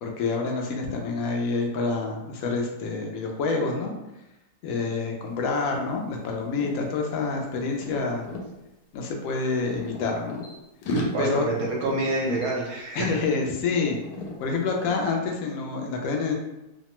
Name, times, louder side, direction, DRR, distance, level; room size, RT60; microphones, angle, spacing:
voice 1, 0.0-3.9 4.6-8.3 8.9-10.4 11.2-11.5 12.9-14.0 14.4-16.3, left 4 dB, 70° left, 1 dB, 0.9 m, -27 dB
sound 1, 5.2-5.4 5.7-8.5 9.3-10.5 10.8-13.4 13.7-14.4 14.8-15.0, left 1 dB, 85° left, 1.2 m, -35 dB
voice 2, 11.1-13.2, right 2 dB, 70° right, -3 dB, 1.1 m, -27 dB
2.8 x 2.1 x 2.9 m, 0.94 s
omnidirectional pair, 1.7 m